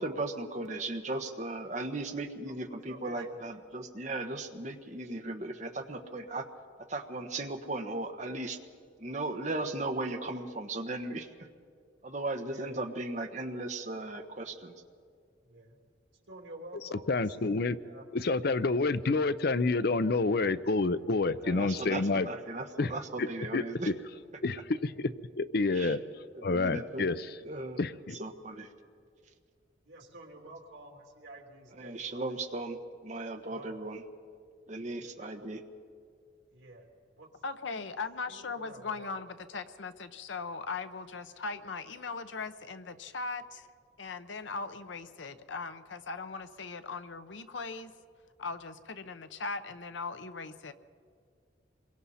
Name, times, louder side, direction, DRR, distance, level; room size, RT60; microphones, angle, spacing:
voice 1, 0.0-6.4 6.9-8.6 9.0-11.3 12.0-14.7 21.4-23.9 25.7-25.9 26.5-27.1 27.4-27.8 28.2-28.7 31.8-34.0 34.7-35.6, right 2 dB, 40° right, 5 dB, 1.2 m, -37 dB
voice 2, 2.5-3.4 12.5-12.9 15.4-15.8 16.3-18.1 29.8-32.2 33.4-33.8 34.8-35.5 36.5-36.9 37.2-37.3 38.3-39.1, right 2 dB, 80° right, 0 dB, 3.1 m, -50 dB
voice 3, 17.1-17.8 18.1-22.3 22.8-22.9 23.2-23.3 23.5-23.9 24.4-26.0 26.4-27.4 27.8-28.2, left 3 dB, 55° left, 14 dB, 0.6 m, -28 dB
voice 4, 37.4-43.7 44.0-47.9 48.4-50.7, left 4 dB, 80° left, 11 dB, 0.9 m, -39 dB
27.0 x 23.0 x 4.2 m, 2.1 s
head